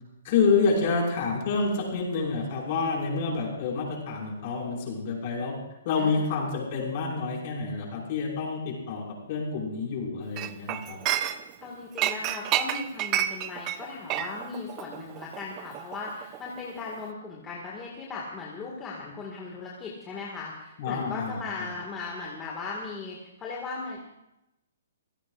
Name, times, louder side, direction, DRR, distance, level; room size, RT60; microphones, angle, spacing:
voice 1, 0.2-5.5 5.8-11.0 20.8-21.4, left 4 dB, 35° left, -2 dB, 5.5 m, -28 dB
voice 2, 6.0-6.3 11.6-24.0, left 4 dB, 10° left, -4 dB, 2.0 m, -37 dB
Chink clink, 10.4-11.6 12.0-16.6 16.9-17.1, right 11 dB, 20° right, 0.6 m, -30 dB
27.5 x 16.5 x 2.5 m, 0.90 s
hypercardioid pair, 170°, 0 cm